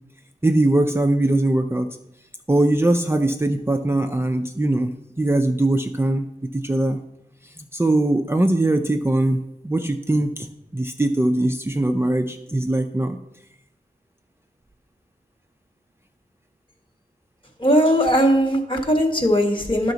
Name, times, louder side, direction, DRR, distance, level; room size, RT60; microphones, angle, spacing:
voice 1, 0.4-1.9 2.5-6.3 6.5-7.0 7.4-10.5 10.7-13.2, right 1 dB, 15° right, 4 dB, 0.5 m, -21 dB
voice 2, 17.6-19.9, equal, 30° left, 3 dB, 1.5 m, -19 dB
11.5 x 5.7 x 4.0 m, 0.82 s
wide cardioid pair, 80°, 16 cm